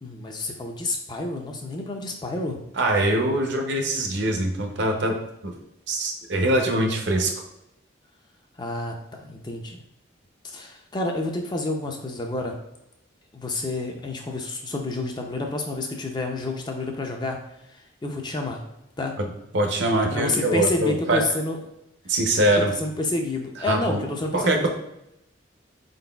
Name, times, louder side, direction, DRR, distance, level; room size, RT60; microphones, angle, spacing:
voice 1, 0.0-2.6 8.6-9.8 10.4-12.6 13.3-17.4 17.7-18.6 19.0-19.1 20.1-21.6 22.8-24.7, left 2 dB, 20° left, 2 dB, 0.4 m, -29 dB
voice 2, 2.7-5.5 5.9-7.3 19.2-19.3 19.5-21.2 22.1-22.7 23.7-24.0 24.3-24.7, right 1 dB, 60° right, 3 dB, 0.6 m, -23 dB
4.3 x 3.9 x 2.2 m, 0.85 s
head